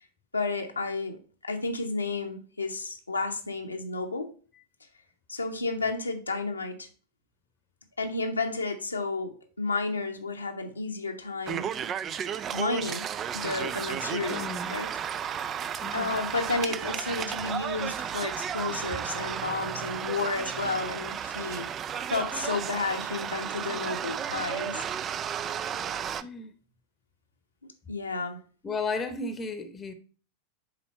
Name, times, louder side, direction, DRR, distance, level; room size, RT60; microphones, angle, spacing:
voice 1, 0.3-4.3 5.3-6.9 8.0-11.7 12.5-13.0 13.3-14.9 15.9-21.7 22.1-24.9 27.9-28.4, left 3 dB, 80° left, 1.0 m, -32 dB
sound 1, 11.5-26.2, right 8 dB, 25° right, 0.4 m, -33 dB
voice 2, 14.3-14.8 15.8-16.2 26.2-26.5 28.6-29.9, left 3 dB, 20° left, 0.9 m, -34 dB
7.0 x 4.3 x 4.2 m
figure-of-eight pair, 90°, 0 cm